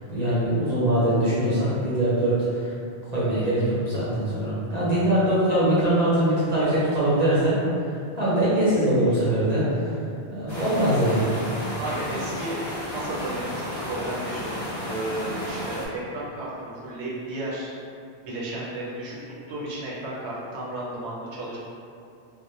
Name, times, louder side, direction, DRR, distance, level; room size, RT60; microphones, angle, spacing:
voice 1, 0.1-2.7 3.1-7.6 8.2-9.7 10.3-11.3, right 1 dB, 50° right, -9 dB, 0.5 m, -22 dB
sound 1, 10.5-15.9, left 1 dB, 45° left, 0.7 m, -33 dB
voice 2, 11.8-12.6 12.9-17.7 18.2-21.6, right 1 dB, 90° right, -5 dB, 0.9 m, -33 dB
2.1 x 2.1 x 2.9 m, 2.5 s
omnidirectional pair, 1.1 m